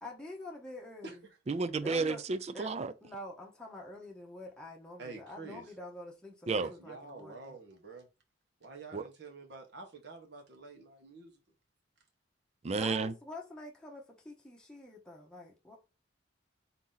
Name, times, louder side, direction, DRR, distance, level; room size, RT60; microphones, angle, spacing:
voice 1, 0.0-1.2 1.8-2.2 2.5-2.7 3.0-7.6 12.7-15.8, left 1 dB, 5° left, 0.9 m, -46 dB
voice 2, 1.5-2.9 6.5-6.7 8.9-9.0 12.6-13.1, right 4 dB, 35° right, 0.4 m, -32 dB
voice 3, 5.0-5.6 6.5-8.1 8.6-11.4, right 3 dB, 60° right, 1.2 m, -48 dB
4.0 x 2.9 x 3.8 m
head